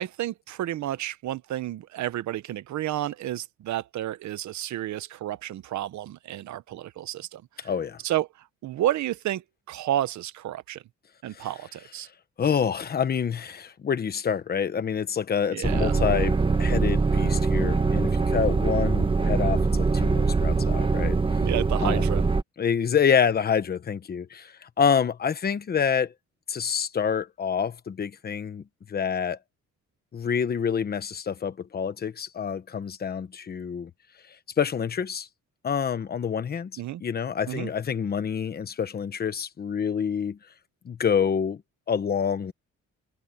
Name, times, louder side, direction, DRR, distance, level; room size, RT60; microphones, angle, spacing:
voice 1, 0.0-7.7 8.0-8.3 8.6-10.8 11.2-12.1 15.5-16.0 21.4-22.2 36.8-37.0 37.5-37.7, right 13 dB, 75° right, 0.9 m, -31 dB
voice 2, 7.6-8.0 11.3-11.5 12.4-21.2 21.8-22.0 22.6-26.1 26.5-28.6 28.9-29.4 30.1-33.9 34.6-35.3 35.6-36.7 37.0-40.4 40.8-41.6 41.9-42.5, left 7 dB, 30° left, 1.1 m, -27 dB
sound 1, 15.6-22.4, right 4 dB, 20° right, 1.1 m, -23 dB
cardioid pair, 175°, 29 cm